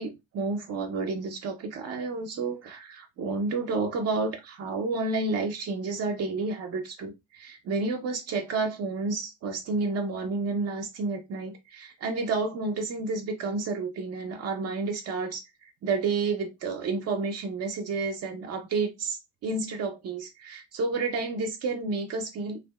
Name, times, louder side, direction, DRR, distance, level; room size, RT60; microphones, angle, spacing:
voice 1, 0.0-15.4 15.8-22.6, right 3 dB, 50° right, 0.6 m, -30 dB
2.6 x 2.4 x 2.2 m
supercardioid pair, 70°, 31 cm